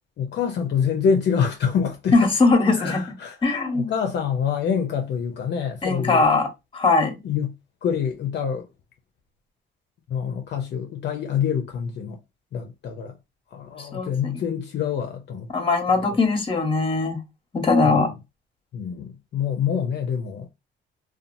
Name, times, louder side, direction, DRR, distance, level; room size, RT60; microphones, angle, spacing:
voice 1, 0.2-2.3 2.7-6.3 7.2-7.5 7.8-8.7 10.1-12.2 12.5-13.2 13.5-15.5 15.9-16.2 17.8-18.1 18.7-20.5, left 7 dB, 60° left, 0.5 m, -26 dB
voice 2, 2.1-3.0 3.4-3.9 5.8-6.5 6.7-7.2 13.9-14.3 15.5-17.2 17.5-18.1, left 3 dB, 25° left, 0.9 m, -20 dB
2.7 x 2.2 x 2.6 m
cardioid pair, 90°, 20 cm